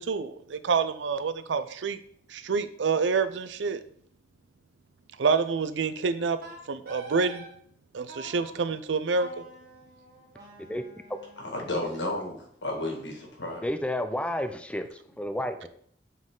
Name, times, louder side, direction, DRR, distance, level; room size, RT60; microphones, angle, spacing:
voice 1, 0.0-2.0 2.3-3.8 5.2-6.4 6.7-7.5 7.9-9.4, right 5 dB, 80° right, 12 dB, 0.5 m, -27 dB
Wind instrument woodwind instrument, 6.4-7.5 8.1-8.5 9.1-12.1, right 1 dB, 55° right, 1.7 m, -47 dB
voice 2, 11.4-13.6, left 1 dB, 80° left, 1 dB, 1.9 m, -33 dB
voice 3, 13.6-15.7, left 1 dB, 5° left, 8 dB, 0.4 m, -31 dB
7.3 x 4.0 x 3.8 m, 0.64 s
head